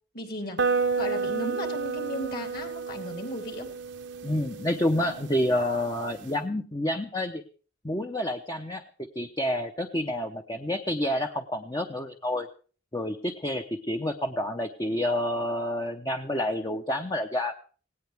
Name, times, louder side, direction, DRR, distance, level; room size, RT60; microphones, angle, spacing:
voice 1, 0.1-3.7, left 1 dB, 55° left, 4 dB, 3.5 m, -36 dB
sound 1, 0.6-6.3, right 4 dB, 70° right, 0.9 m, -31 dB
voice 2, 4.2-7.4 7.8-8.8 9.1-12.5 12.9-17.6, left 1 dB, 20° left, 4 dB, 0.8 m, -29 dB
18.5 x 17.5 x 3.5 m, 0.40 s
head